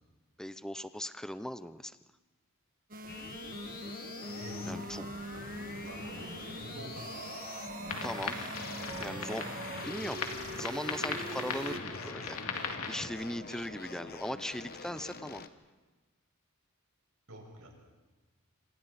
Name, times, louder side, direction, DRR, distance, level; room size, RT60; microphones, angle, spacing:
voice 1, 0.4-2.0 4.7-5.1 8.0-8.5 9.0-9.6 9.8-12.4 12.9-15.4, equal, 5° left, 13 dB, 0.6 m, -39 dB
sound 1, 2.9-11.8, right 1 dB, 40° right, 1.8 m, -43 dB
sound 2, 3.1-8.0 8.5-10.6 11.1-15.5, left 5 dB, 45° left, 1.1 m, -46 dB
voice 2, 4.3-7.1 7.8-8.3 17.3-17.8, right 1 dB, 80° right, 0 dB, 6.5 m, -47 dB
sound 3, 7.9-13.1, left 5 dB, 90° left, 2.1 m, -38 dB
26.5 x 26.0 x 4.2 m, 1.2 s
head